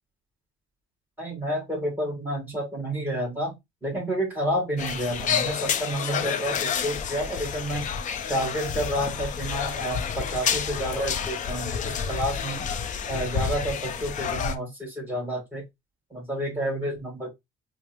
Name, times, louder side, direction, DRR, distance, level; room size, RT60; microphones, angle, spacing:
voice 1, 1.2-3.5 3.8-7.9 8.3-12.6 13.1-15.6 16.1-17.3, right 1 dB, 10° right, 2.4 m, -30 dB
sound 1, 4.8-14.5, left 7 dB, 50° left, 0.5 m, -29 dB
4.8 x 2.0 x 2.9 m
cardioid pair, 110°, 17 cm